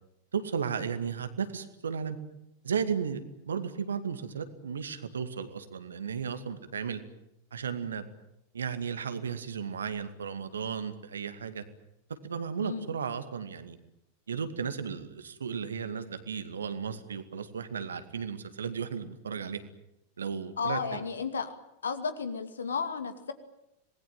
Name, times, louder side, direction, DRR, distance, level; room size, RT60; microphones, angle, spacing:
voice 1, 0.3-2.2 2.6-7.0 7.5-8.1 8.5-11.6 12.2-13.8 14.3-19.6 20.2-21.0, right 6 dB, 70° right, 10 dB, 2.2 m, -34 dB
voice 2, 20.6-21.5 21.8-23.3, left 5 dB, 70° left, 10 dB, 2.4 m, -33 dB
26.5 x 20.0 x 9.3 m, 0.84 s
figure-of-eight pair, 90°, 0 cm